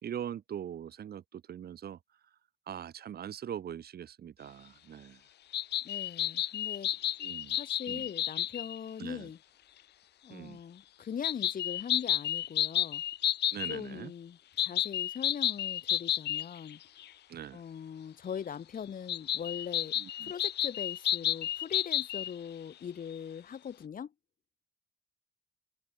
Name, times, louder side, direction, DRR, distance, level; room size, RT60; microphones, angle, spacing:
voice 1, 0.0-2.0 2.7-5.2 7.2-7.6 7.9-8.0 9.0-9.3 10.3-10.6 13.5-14.1 17.3-17.6 20.0-20.3, right 9 dB, 65° right, 3.5 m, -42 dB
sound 1, 5.5-8.8 11.2-13.8 14.6-16.7 17.0-17.1 19.1-22.3, left 12 dB, 85° left, 1.1 m, -31 dB
voice 2, 5.8-6.9 7.5-9.4 10.2-13.0 13.7-16.8 17.5-24.1, left 8 dB, 55° left, 4.9 m, -41 dB
cardioid pair, 130°, 17 cm